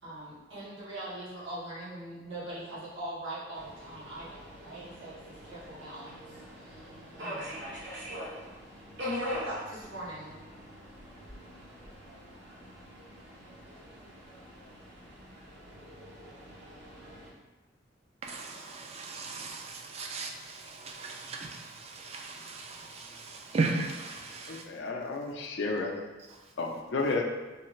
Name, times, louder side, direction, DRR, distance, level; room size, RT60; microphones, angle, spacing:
voice 1, 0.0-7.6 9.0-10.4, right 1 dB, 85° right, -10 dB, 1.2 m, -41 dB
Subway metro underground, 3.5-17.3, equal, 60° right, 0.8 m, -44 dB
voice 2, 18.2-24.7 26.3-26.5, right 3 dB, 30° right, 2 dB, 0.3 m, -36 dB
voice 3, 24.5-26.0 26.6-27.2, left 3 dB, 60° left, 2 dB, 0.4 m, -32 dB
3.2 x 2.4 x 3.1 m, 1.2 s
head